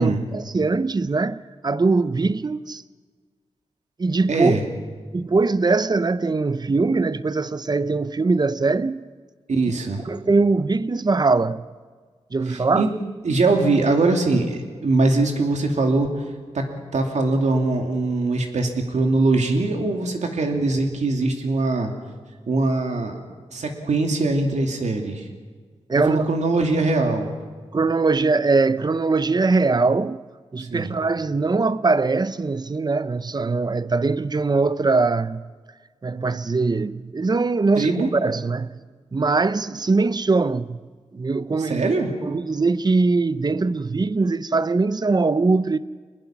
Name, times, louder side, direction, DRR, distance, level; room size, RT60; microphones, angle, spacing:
voice 1, 0.0-2.8 4.0-4.5 5.1-9.1 10.1-11.7 12.3-12.9 25.9-26.3 27.7-30.2 30.5-35.5 36.0-38.8 39.1-40.8 41.1-41.8 42.2-45.8, right 3 dB, 35° right, 0.6 m, -21 dB
voice 2, 4.3-4.6 9.5-10.0 12.5-12.9 13.2-16.2 16.5-21.9 22.5-23.2 23.5-25.3 26.1-27.4 30.6-30.9 37.8-38.1 41.6-42.1, right 3 dB, 80° right, 2.7 m, -22 dB
23.5 x 20.5 x 6.0 m
wide cardioid pair, 100°, 12 cm